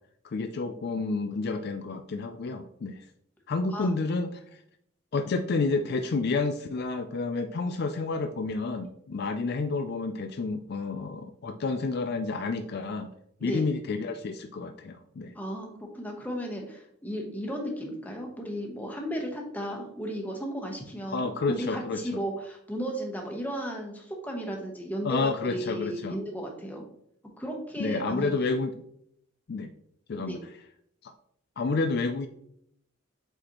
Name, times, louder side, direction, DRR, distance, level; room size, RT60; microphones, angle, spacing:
voice 1, 0.2-3.0 3.5-4.6 5.1-13.1 13.4-15.3 21.1-22.2 25.0-26.2 27.8-28.7 29.5-29.7 30.1-30.4 31.0-31.1 31.6-32.3, left 3 dB, 50° left, 7 dB, 0.4 m, -30 dB
voice 2, 15.3-26.8 27.4-28.3 30.2-30.4, equal, 10° left, 0 dB, 1.0 m, -35 dB
7.8 x 4.1 x 2.9 m, 0.72 s
head